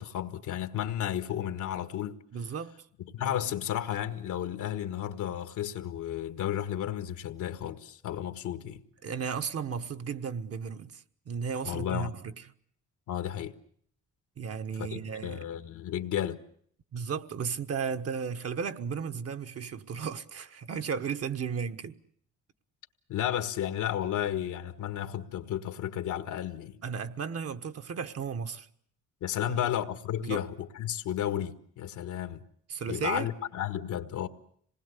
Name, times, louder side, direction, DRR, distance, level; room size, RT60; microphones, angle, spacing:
voice 1, 0.0-2.2 3.1-8.8 11.6-12.1 13.1-13.5 14.8-16.4 23.1-26.8 29.2-32.4 32.9-34.3, left 11 dB, 80° left, 1.6 m, -33 dB
voice 2, 2.3-2.7 3.2-3.5 9.0-12.3 14.4-15.4 16.9-22.0 26.8-28.7 29.5-29.6 30.2-30.4 32.7-33.3, right 6 dB, 50° right, 1.3 m, -34 dB
26.5 x 20.0 x 8.3 m
cardioid pair, 90°, 30 cm